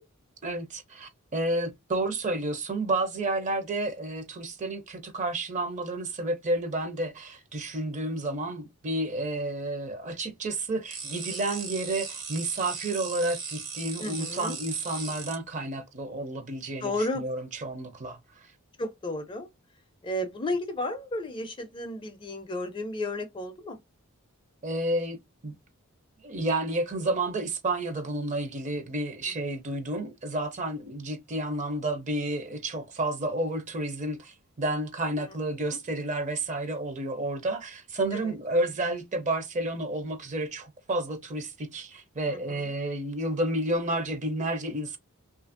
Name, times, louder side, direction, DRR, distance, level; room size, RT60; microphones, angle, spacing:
voice 1, 0.4-18.2 24.6-25.2 25.4-25.5 26.2-45.0, right 2 dB, 35° right, 0.5 m, -31 dB
sound 1, 10.9-15.4, right 5 dB, 70° right, 1.1 m, -38 dB
voice 2, 14.0-14.5 16.8-17.2 18.8-19.5 20.0-23.8 29.2-29.3 38.1-38.2 42.3-42.6, left 1 dB, 25° left, 0.4 m, -33 dB
2.7 x 2.5 x 2.5 m
head